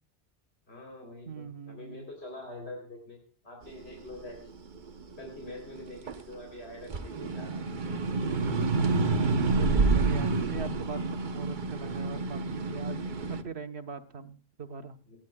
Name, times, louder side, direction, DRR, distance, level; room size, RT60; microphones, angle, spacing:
voice 1, 0.7-3.2 3.4-4.4 5.2-6.0 6.3-7.6 12.9-13.4 15.1-15.2, left 2 dB, 80° left, 1 dB, 3.6 m, -45 dB
voice 2, 1.3-2.1 9.5-13.0 13.3-15.0, right 6 dB, 85° right, 7 dB, 1.4 m, -41 dB
sound 1, 3.8-6.4 6.8-13.4, right 3 dB, 50° right, 1.0 m, -28 dB
28.0 x 10.5 x 2.3 m, 0.40 s
omnidirectional pair, 1.1 m